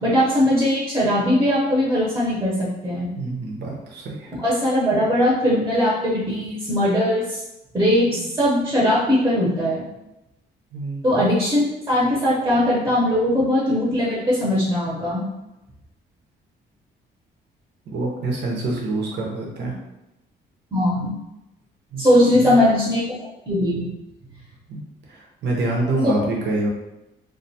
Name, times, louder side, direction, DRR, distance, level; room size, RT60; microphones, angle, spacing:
voice 1, 0.0-3.1 4.4-7.4 7.7-9.8 11.0-15.2 20.7-21.1 22.0-23.0 23.5-23.9 26.0-26.2, left 1 dB, 15° right, -6 dB, 0.7 m, -20 dB
voice 2, 3.2-4.3 8.1-8.3 10.7-11.0 17.9-19.8 21.9-22.1 22.3-22.6 24.7-24.8 25.1-26.7, right 2 dB, 60° right, -2 dB, 0.7 m, -26 dB
2.4 x 2.2 x 2.7 m, 0.92 s
cardioid pair, 90°, 20 cm